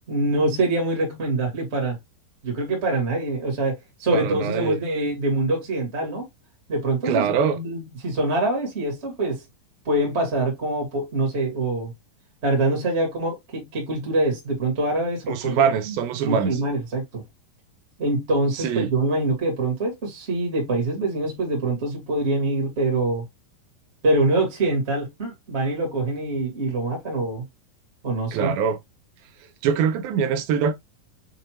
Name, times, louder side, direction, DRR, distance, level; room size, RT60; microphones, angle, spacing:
voice 1, 0.1-2.0 2.4-6.2 6.7-9.4 9.8-11.9 12.4-15.9 16.2-17.2 18.0-23.2 24.0-27.4 28.0-28.5, right 2 dB, 30° right, 1.2 m, -24 dB
voice 2, 4.1-4.8 7.1-7.6 15.3-16.6 18.5-18.9 28.3-28.8 29.6-30.7, right 7 dB, 85° right, 2.2 m, -23 dB
6.6 x 2.7 x 3.0 m
omnidirectional pair, 4.8 m